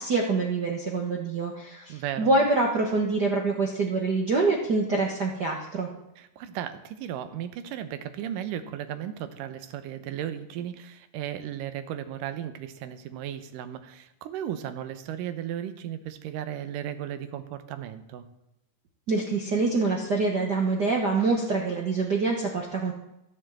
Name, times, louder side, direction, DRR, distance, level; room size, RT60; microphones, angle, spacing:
voice 1, 0.0-5.9 19.1-22.9, right 3 dB, 60° right, 0 dB, 1.0 m, -25 dB
voice 2, 1.9-2.3 6.2-18.3, right 10 dB, 80° right, 10 dB, 2.5 m, -35 dB
14.0 x 7.3 x 7.6 m, 0.87 s
omnidirectional pair, 3.8 m